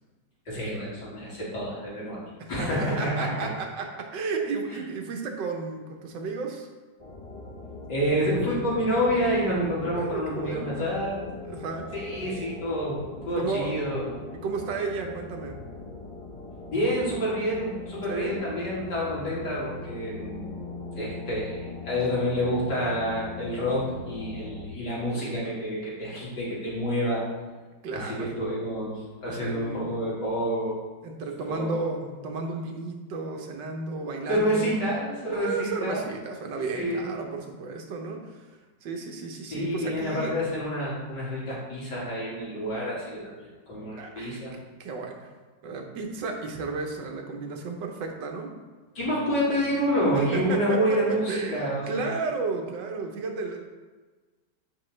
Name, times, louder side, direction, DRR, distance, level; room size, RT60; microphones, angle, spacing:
voice 1, 0.5-2.2 2.5-3.5 7.9-11.2 11.9-14.1 16.7-20.5 20.9-27.2 27.9-30.8 31.5-31.7 34.3-36.0 36.5-37.1 39.5-44.5 48.9-52.1, equal, 75° left, -7 dB, 3.1 m, -28 dB
voice 2, 2.4-6.7 9.9-10.9 11.4-11.9 13.4-13.8 14.4-15.6 18.1-18.4 27.8-28.3 29.3-30.0 31.0-34.8 35.3-40.3 44.0-44.4 44.8-45.3 45.6-48.5 50.1-53.6, right 4 dB, 85° right, 2 dB, 1.7 m, -33 dB
sound 1, 7.0-24.7, left 2 dB, 30° left, 0.8 m, -40 dB
10.0 x 5.4 x 3.3 m, 1.3 s
omnidirectional pair, 1.9 m